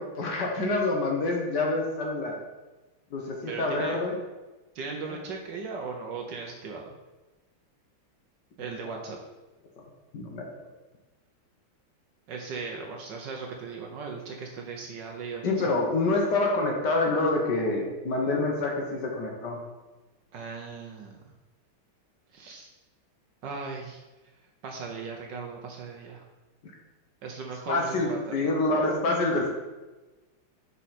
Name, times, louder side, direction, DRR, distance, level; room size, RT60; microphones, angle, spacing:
voice 1, 0.0-2.4 3.1-4.2 5.1-5.2 10.1-10.5 15.4-19.6 27.7-29.5, left 2 dB, 60° left, 0 dB, 1.5 m, -27 dB
voice 2, 3.5-4.0 4.7-6.9 8.6-9.2 12.3-15.7 20.3-21.2 22.3-22.7 23.4-24.0 24.6-26.2 27.2-28.3, right 4 dB, 65° right, 1 dB, 1.2 m, -38 dB
6.1 x 5.4 x 4.2 m, 1.2 s
omnidirectional pair, 2.4 m